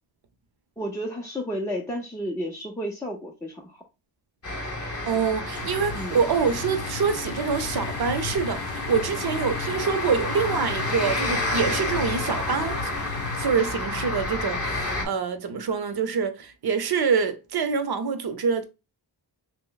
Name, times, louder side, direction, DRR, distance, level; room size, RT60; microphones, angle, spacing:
voice 1, 0.8-3.8 5.9-6.2, equal, 5° left, 0.4 m, -32 dB
sound 1, 4.4-15.1, left 2 dB, 30° left, 0.8 m, -30 dB
voice 2, 5.1-12.9 13.4-18.6, right 6 dB, 55° right, 0.6 m, -26 dB
sound 2, 5.6-13.4, left 5 dB, 60° left, 0.5 m, -36 dB
2.9 x 2.0 x 3.9 m
wide cardioid pair, 120°, 45 cm